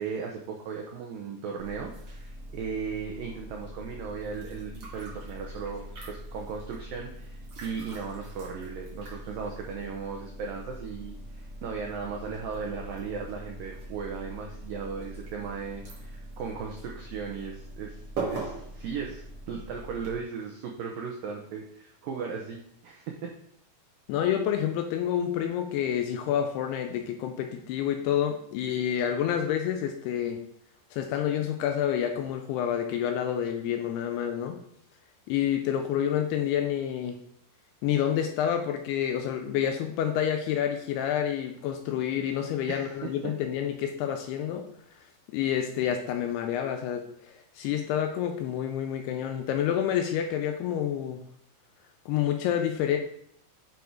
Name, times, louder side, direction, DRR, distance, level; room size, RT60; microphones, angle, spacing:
voice 1, 0.0-18.0 18.3-23.3 42.7-43.3, right 5 dB, 85° right, 1 dB, 2.0 m, -37 dB
sound 1, 1.6-20.1, right 2 dB, 45° right, 2.3 m, -42 dB
voice 2, 24.1-30.4 30.9-34.6 35.3-37.2 37.8-44.6 45.3-51.2 52.1-53.0, left 9 dB, 80° left, 4 dB, 2.4 m, -28 dB
8.3 x 4.3 x 4.7 m, 0.70 s
omnidirectional pair, 5.2 m